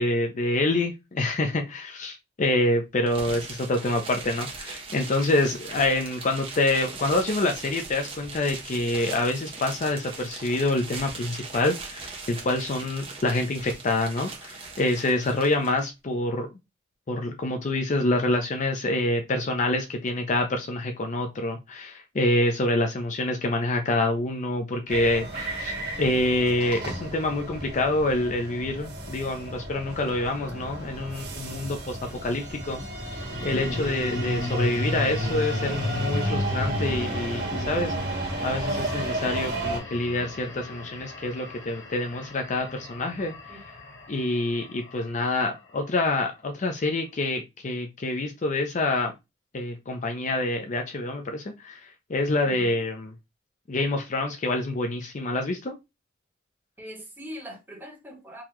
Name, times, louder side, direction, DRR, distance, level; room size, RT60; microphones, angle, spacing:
voice 1, 0.0-16.5 17.1-32.8 33.4-43.6 44.1-49.1 49.5-53.1 53.7-55.8, left 2 dB, 40° left, 0.5 m, -27 dB
sound 1, 3.1-15.8, right 4 dB, 30° right, 1.1 m, -40 dB
sound 2, 24.9-39.8, right 2 dB, 55° right, 1.6 m, -34 dB
sound 3, 28.8-31.3 32.9-45.2, left 1 dB, 80° left, 1.2 m, -34 dB
voice 2, 56.8-58.4, equal, 10° right, 1.7 m, -42 dB
3.8 x 2.9 x 3.0 m
head